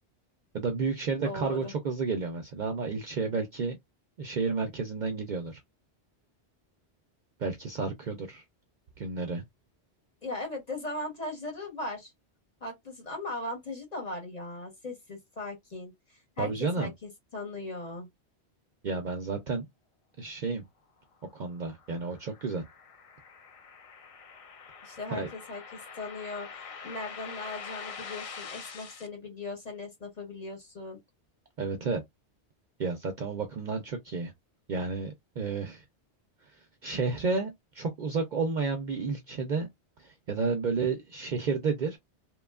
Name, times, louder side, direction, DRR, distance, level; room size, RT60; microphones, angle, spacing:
voice 1, 0.5-3.8 4.2-5.6 7.4-8.4 9.0-9.4 16.4-16.9 18.8-19.7 20.2-20.6 21.3-22.6 25.1-25.3 31.6-32.0 32.8-34.3 34.7-35.8 36.8-39.7 40.0-42.0, right 4 dB, 55° right, 0.5 m, -31 dB
voice 2, 1.2-1.7 10.2-12.1 12.6-18.1 24.8-26.5 26.8-31.0, left 2 dB, 40° left, 0.9 m, -38 dB
sound 1, 21.2-29.1, left 5 dB, 55° left, 0.4 m, -45 dB
2.9 x 2.2 x 2.2 m
omnidirectional pair, 1.1 m